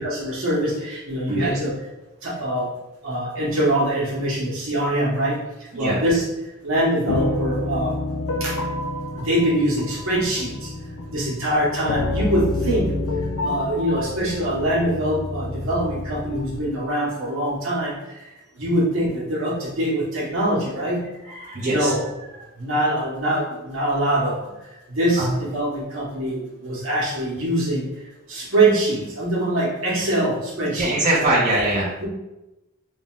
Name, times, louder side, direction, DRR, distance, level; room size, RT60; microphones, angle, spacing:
voice 1, 0.0-1.8 2.2-2.7 3.0-5.4 5.8-6.2 6.6-7.9 8.4-8.5 9.2-10.7 11.1-12.9 13.4-17.9 18.6-21.0 21.6-22.0 22.6-24.4 24.9-27.9 28.3-31.0 32.0-32.1, right 1 dB, 80° right, -6 dB, 1.4 m, -23 dB
voice 2, 1.3-1.6 5.7-6.0 21.2-22.0 25.2-25.3 30.7-31.9, right 1 dB, 35° right, -8 dB, 1.1 m, -22 dB
sound 1, 7.1-16.7, left 2 dB, 90° left, 0.4 m, -28 dB
3.8 x 2.5 x 3.7 m, 0.98 s
head